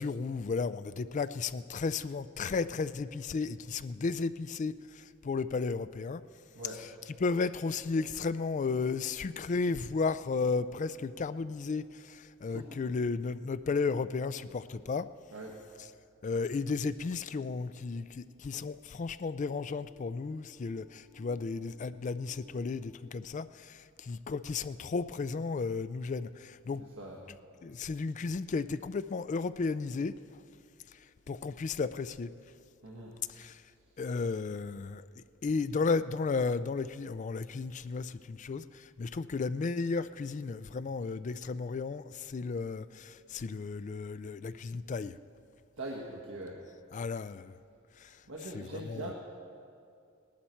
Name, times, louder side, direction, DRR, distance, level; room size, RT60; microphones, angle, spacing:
voice 1, 0.0-6.2 6.8-6.9 7.2-15.1 16.2-26.8 27.6-30.4 31.3-32.3 33.3-33.6 34.0-45.2 46.9-47.6 48.0-48.2 48.5-49.1, left 4 dB, 35° left, 15 dB, 0.3 m, -34 dB
sound 1, 19.3-23.6, left 1 dB, 5° right, 0.8 m, -60 dB
voice 2, 32.8-33.1 45.8-46.6 48.3-49.1, right 1 dB, 75° right, -3 dB, 1.4 m, -41 dB
18.5 x 11.5 x 4.4 m, 2.4 s
head